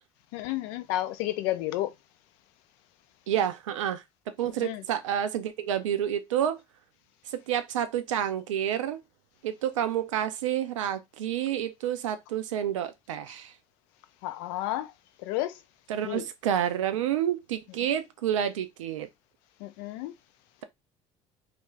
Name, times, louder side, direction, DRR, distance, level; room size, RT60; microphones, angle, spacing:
voice 1, 0.3-1.9 4.6-4.8 14.2-14.9 15.2-15.6 16.0-16.2 19.6-20.1, left 15 dB, 65° left, 0.4 m, -31 dB
voice 2, 3.3-4.0 4.4-6.6 7.3-9.0 9.4-13.5 15.9-19.1, right 10 dB, 80° right, 0.4 m, -29 dB
2.4 x 2.1 x 3.1 m
hypercardioid pair, 55°, 16 cm